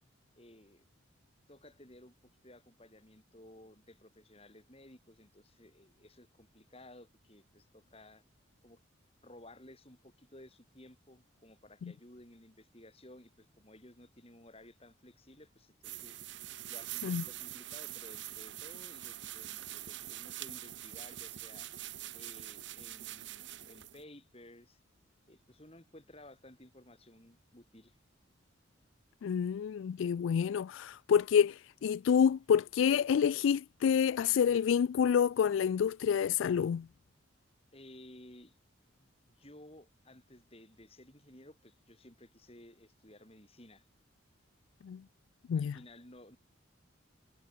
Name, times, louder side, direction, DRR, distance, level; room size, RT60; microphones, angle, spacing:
voice 1, 0.4-0.9 1.5-2.1 2.4-8.2 8.6-8.8 9.2-16.2 16.7-21.7 22.1-24.8 25.3-28.0 37.7-38.5 39.0-43.9 45.5-46.4, left 1 dB, 30° left, 5.9 m, -56 dB
sound 1, 15.8-24.0, right 14 dB, 60° right, 1.0 m, -44 dB
voice 2, 29.2-36.9 44.8-45.0 45.5-45.8, left 7 dB, 75° left, 0.3 m, -28 dB
head